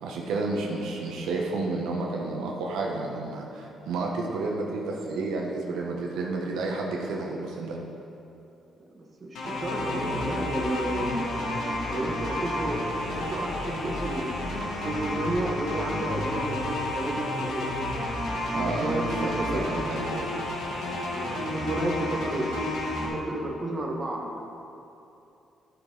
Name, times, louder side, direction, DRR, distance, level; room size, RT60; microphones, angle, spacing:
voice 1, 0.0-7.8 18.5-20.3, right 3 dB, 85° right, -1 dB, 1.0 m, -31 dB
voice 2, 8.9-11.3 11.9-14.3 14.8-17.7 18.7-19.7 21.1-22.6 23.1-24.4, right 1 dB, 35° right, 0 dB, 1.4 m, -32 dB
sound 1, 9.3-23.1, left 1 dB, 75° left, 1.6 m, -31 dB
12.0 x 6.2 x 3.9 m, 2.8 s
cardioid pair, 90°, 0 cm